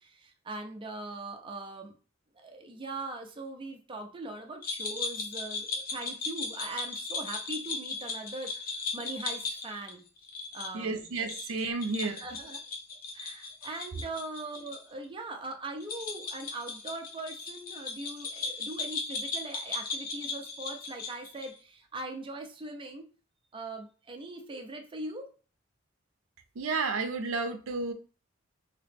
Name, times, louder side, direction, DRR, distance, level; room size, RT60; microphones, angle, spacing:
voice 1, 0.0-1.9 2.3-10.0 10.5-11.0 12.0-12.6 13.1-23.1 23.5-25.3, right 2 dB, 25° right, 0.5 m, -41 dB
sound 1, 4.6-14.8 15.0-15.1 15.8-21.6, left 4 dB, 45° left, 0.6 m, -37 dB
voice 2, 10.7-12.2 26.5-27.9, right 3 dB, 75° right, 0.5 m, -31 dB
2.9 x 2.9 x 3.4 m
head